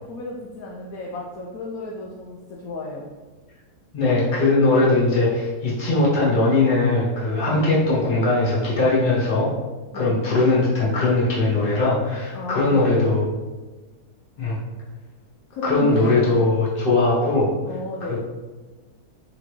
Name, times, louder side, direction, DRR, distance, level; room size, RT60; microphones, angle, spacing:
voice 1, 0.0-3.1 4.3-4.5 7.5-7.8 9.9-10.2 12.3-12.9 15.5-16.4 17.7-18.2, left 2 dB, 70° left, -3 dB, 1.0 m, -32 dB
voice 2, 3.9-9.5 9.9-13.2 14.4-14.6 15.6-17.5 18.1-18.2, left 2 dB, 35° left, -7 dB, 1.3 m, -20 dB
3.8 x 3.6 x 3.2 m, 1.2 s
omnidirectional pair, 1.7 m